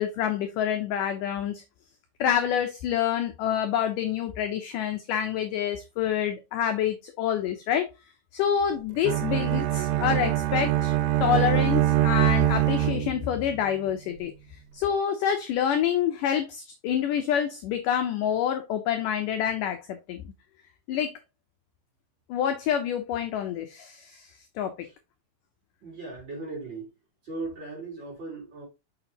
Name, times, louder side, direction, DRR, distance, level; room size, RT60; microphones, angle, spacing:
voice 1, 0.0-1.6 2.2-7.9 8.3-10.9 11.2-14.3 14.7-20.2 20.9-21.1 22.3-24.3 24.6-24.7, left 9 dB, 80° left, 1.9 m, -27 dB
Bowed string instrument, 9.0-13.5, right 14 dB, 85° right, 2.8 m, -24 dB
voice 2, 25.8-26.9 27.2-28.6, right 3 dB, 30° right, 4.0 m, -38 dB
6.5 x 5.8 x 2.8 m
omnidirectional pair, 4.6 m